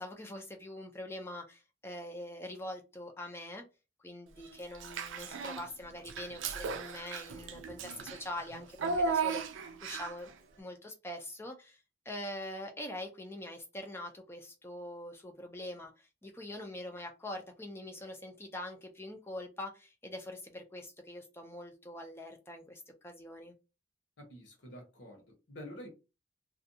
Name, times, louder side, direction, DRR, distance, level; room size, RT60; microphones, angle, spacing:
voice 1, 0.0-3.6 4.0-10.3 10.6-11.8 12.1-23.5, left 1 dB, 15° left, 0.3 m, -44 dB
Child speech kid speaking / Bathtub (filling or washing), 4.7-5.7 6.0-10.3, right 4 dB, 90° right, 0.4 m, -36 dB
voice 2, 24.2-25.9, equal, 70° left, 1.0 m, -48 dB
2.5 x 2.2 x 2.6 m
head